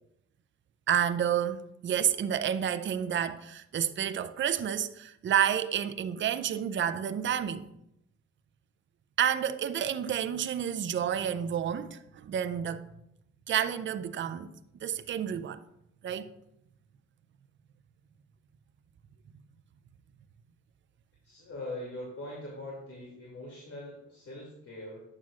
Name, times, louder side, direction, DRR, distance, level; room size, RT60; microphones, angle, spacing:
voice 1, 0.9-7.7 9.2-12.8 13.5-14.5 14.8-15.6 16.0-16.3, right 9 dB, 40° right, 0.5 m, -30 dB
voice 2, 21.2-25.0, left 1 dB, 50° left, 2.6 m, -42 dB
9.0 x 7.6 x 2.4 m
cardioid pair, 90°, 30 cm